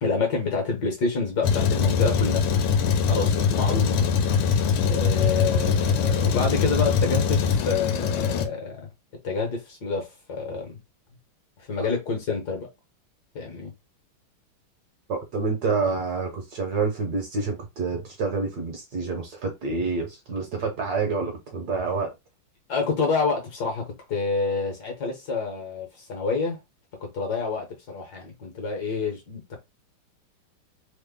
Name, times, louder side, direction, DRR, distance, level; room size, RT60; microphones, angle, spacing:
voice 1, 0.0-2.5 3.1-4.1 4.9-8.9 9.2-10.8 11.6-12.7 13.3-13.7 22.7-26.6 27.0-29.6, left 4 dB, 60° left, 1.3 m, -28 dB
Truck, 1.4-8.5, left 6 dB, 85° left, 1.4 m, -22 dB
voice 2, 15.1-22.1, right 4 dB, 60° right, 1.1 m, -28 dB
3.5 x 2.0 x 3.5 m
omnidirectional pair, 2.3 m